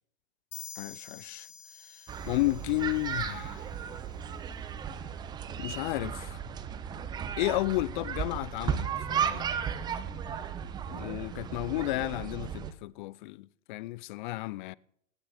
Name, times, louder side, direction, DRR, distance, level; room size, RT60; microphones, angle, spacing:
sound 1, 0.5-4.1, left 7 dB, 80° left, 1.9 m, -49 dB
voice 1, 0.8-1.5 1.9-3.6 5.6-6.4 7.4-9.5 10.9-14.7, left 19 dB, 40° left, 0.5 m, -33 dB
sound 2, 2.1-12.7, right 8 dB, 10° right, 0.5 m, -35 dB
17.5 x 16.5 x 3.5 m
hypercardioid pair, 125°, 37 cm